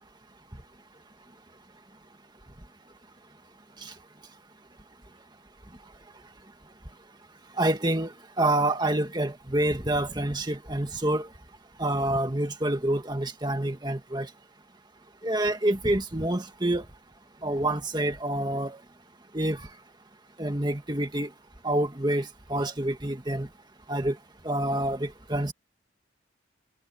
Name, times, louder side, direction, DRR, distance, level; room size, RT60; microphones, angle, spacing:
voice 1, 7.6-11.3 11.8-14.3 15.2-16.9 17.4-18.8 19.3-19.7 20.4-21.3 21.6-23.5 23.9-24.2 24.4-25.5, right 1 dB, 20° right, 1.8 m, -27 dB
head